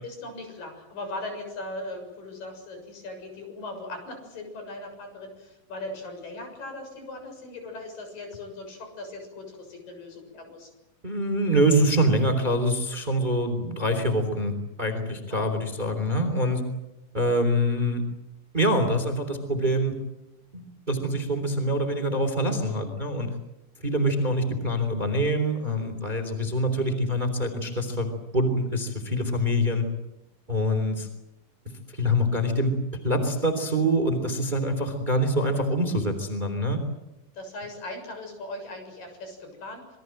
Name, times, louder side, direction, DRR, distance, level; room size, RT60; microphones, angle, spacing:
voice 1, 0.0-10.7 15.3-15.7 22.4-22.9 25.6-25.9 37.3-40.0, left 2 dB, 65° left, 5 dB, 8.7 m, -39 dB
voice 2, 11.0-16.6 17.1-18.0 18.5-20.0 20.5-23.3 23.8-29.9 30.5-31.1 31.9-32.7 33.0-36.8, equal, 15° right, 7 dB, 3.2 m, -25 dB
28.0 x 22.5 x 7.8 m, 0.91 s
omnidirectional pair, 4.2 m